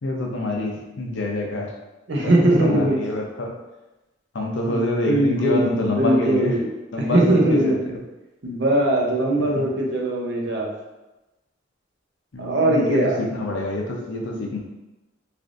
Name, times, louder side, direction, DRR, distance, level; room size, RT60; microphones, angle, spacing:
voice 1, 0.0-1.7 2.2-3.5 4.3-6.6 6.9-7.9 12.3-14.6, left 1 dB, 75° left, 0 dB, 0.6 m, -26 dB
voice 2, 2.1-3.0 4.7-6.7 7.0-7.9 8.4-10.7 12.4-13.2, right 1 dB, 65° right, -1 dB, 0.6 m, -20 dB
3.3 x 2.5 x 2.5 m, 1.0 s
head